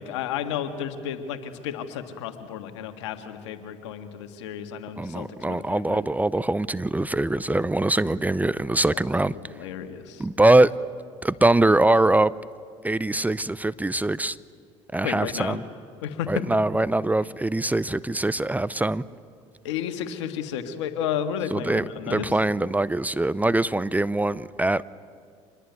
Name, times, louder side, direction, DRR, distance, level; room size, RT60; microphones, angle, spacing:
voice 1, 0.0-6.0 9.3-10.2 15.0-15.6 16.0-16.3 19.6-22.3, left 9 dB, 85° left, 1.8 m, -32 dB
voice 2, 5.0-9.3 10.2-10.7 11.2-12.3 12.8-14.4 14.9-15.6 16.3-19.0 21.5-24.8, right 2 dB, 10° right, 0.6 m, -23 dB
26.0 x 20.0 x 9.4 m
hypercardioid pair, 70°, 15 cm